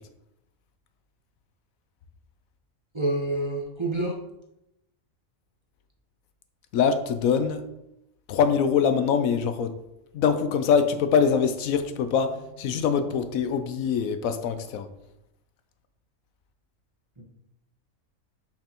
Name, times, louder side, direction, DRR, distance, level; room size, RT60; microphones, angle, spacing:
voice 1, 2.9-4.2 17.2-17.3, right 1 dB, 25° right, -2 dB, 0.9 m, -27 dB
voice 2, 6.7-7.6 8.3-9.7 10.1-14.9, left 6 dB, 75° left, 9 dB, 1.0 m, -23 dB
6.7 x 5.8 x 3.0 m, 0.85 s
omnidirectional pair, 1.5 m